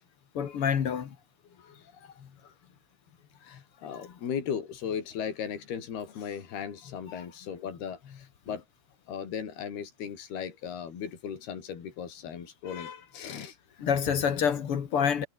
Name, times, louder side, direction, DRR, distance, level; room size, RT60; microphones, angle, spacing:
voice 1, 0.3-1.2 2.2-2.3 7.1-7.2 8.5-8.6 13.8-15.3, left 7 dB, 50° left, 1.9 m, -27 dB
voice 2, 1.6-1.9 3.4-8.6 9.1-13.6, left 7 dB, 80° left, 5.5 m, -37 dB
omnidirectional pair, 4.5 m